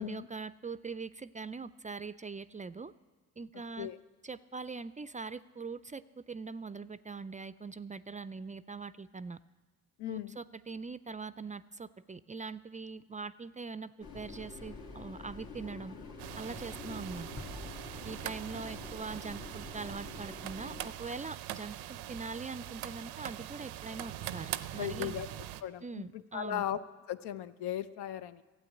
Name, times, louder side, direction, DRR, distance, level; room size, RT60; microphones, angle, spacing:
voice 1, 0.0-2.9 3.4-3.9 4.2-9.4 10.1-15.9 16.4-17.3 18.0-25.2 25.8-26.6, right 4 dB, 20° right, 15 dB, 0.3 m, -42 dB
voice 2, 10.0-10.4 24.8-25.3 25.6-26.8 27.1-28.4, left 11 dB, 80° left, 13 dB, 0.6 m, -37 dB
sound 1, 14.0-20.9, left 4 dB, 60° left, 2.1 m, -47 dB
sound 2, 16.2-25.6, right 13 dB, 85° right, 0.6 m, -42 dB
sound 3, 17.4-20.2, left 2 dB, 30° left, 1.9 m, -51 dB
12.5 x 8.6 x 8.3 m, 1.3 s
supercardioid pair, 45°, 39 cm